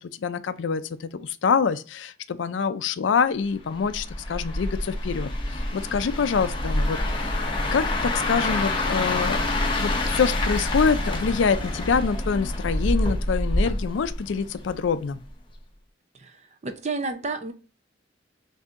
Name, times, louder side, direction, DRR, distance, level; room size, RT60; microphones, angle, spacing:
voice 1, 0.0-15.2, left 5 dB, 70° left, 0.4 m, -26 dB
sound 1, 3.8-14.9 15.2-15.5, left 1 dB, 25° left, 0.8 m, -27 dB
voice 2, 16.1-17.5, right 3 dB, 35° right, 0.6 m, -31 dB
6.2 x 2.7 x 2.5 m
head